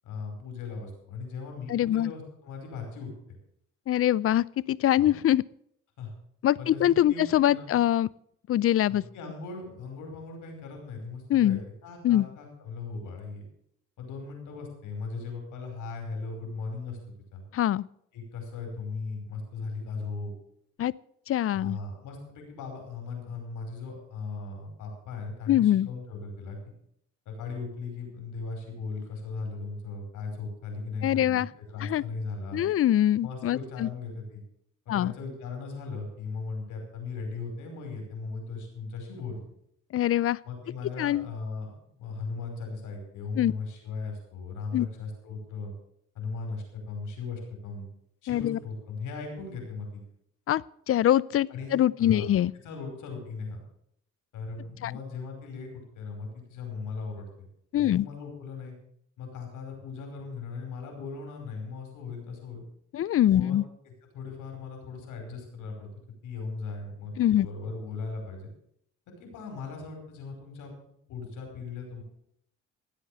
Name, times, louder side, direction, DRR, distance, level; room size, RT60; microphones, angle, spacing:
voice 1, 0.0-3.1 5.0-5.1 6.0-6.1 6.6-7.7 8.9-13.4 14.0-17.0 17.3-17.4 18.1-20.3 21.5-26.6 27.2-32.6 33.2-34.4 34.8-39.4 40.4-45.7 46.1-47.9 48.2-50.0 51.5-51.7 52.0-52.3 52.6-53.6 54.3-57.3 57.8-58.7 59.2-62.6 63.3-63.6 63.8-65.9 66.2-68.5 69.1-72.0, left 4 dB, 85° left, 3 dB, 5.1 m, -38 dB
voice 2, 1.7-2.1 3.9-5.4 6.4-8.1 8.5-9.0 11.3-11.6 12.0-12.3 17.5-17.8 20.8-20.9 21.3-21.8 25.5-25.9 31.0-31.5 31.8-32.0 32.5-33.9 34.9-35.1 39.9-40.4 41.0-41.3 43.4-43.5 44.7-44.9 48.3-48.6 50.5-50.6 50.9-52.5 54.8-54.9 57.7-58.1 62.9-63.7 67.2-67.5, left 12 dB, 50° left, 22 dB, 0.5 m, -23 dB
16.0 x 8.3 x 6.8 m, 0.71 s
cardioid pair, 90°, 30 cm